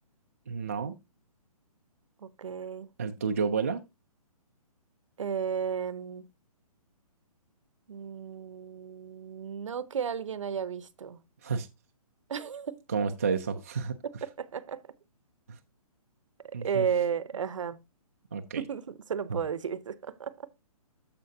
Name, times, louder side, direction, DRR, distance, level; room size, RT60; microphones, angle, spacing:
voice 1, 0.5-1.0 3.0-3.8 11.4-11.7 12.9-14.0 15.5-15.6 16.5-16.9 18.3-18.6 19.3-19.4, right 5 dB, 25° right, 0.3 m, -30 dB
voice 2, 2.2-2.9 5.2-6.3 7.9-11.2 12.3-12.8 14.0-14.9 16.4-17.8 18.6-20.5, right 7 dB, 55° right, 0.7 m, -34 dB
14.0 x 5.0 x 2.7 m
hypercardioid pair, 170°, 20 cm